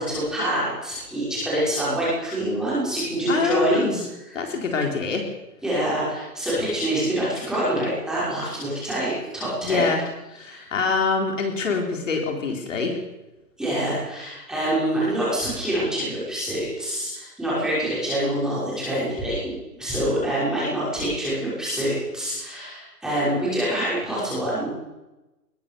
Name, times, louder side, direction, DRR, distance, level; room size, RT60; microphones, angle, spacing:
voice 1, 0.0-4.4 5.6-9.9 10.5-10.7 13.6-24.7, right 1 dB, ahead, -9 dB, 5.9 m, -26 dB
voice 2, 3.3-4.0 4.3-5.2 9.6-10.0 10.3-13.0, left 4 dB, 50° left, 2 dB, 4.1 m, -25 dB
21.0 x 18.0 x 6.9 m, 1.0 s
hypercardioid pair, 175°, 48 cm